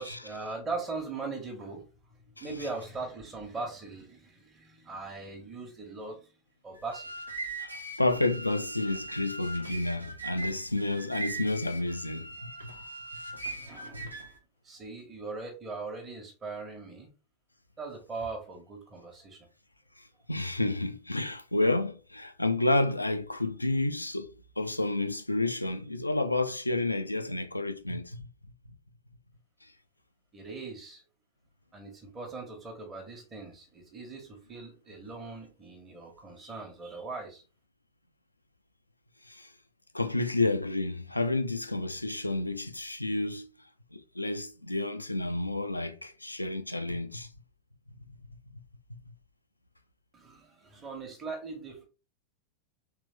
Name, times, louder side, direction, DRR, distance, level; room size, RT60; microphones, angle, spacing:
voice 1, 0.0-1.9 2.4-6.3 6.6-7.1 12.7-12.8 13.5-14.2 14.6-17.1 17.8-19.5 30.3-31.0 31.7-37.4 50.1-51.9, right 3 dB, 20° right, 1.1 m, -40 dB
sound 1, 6.7-14.4, right 2 dB, 80° right, 0.6 m, -40 dB
voice 2, 7.6-12.5 13.9-14.1 20.0-24.3 24.6-28.3 39.3-39.5 39.9-43.5 43.9-47.3, left 2 dB, 85° left, 0.4 m, -30 dB
3.3 x 3.2 x 3.2 m
figure-of-eight pair, 90°, 0 cm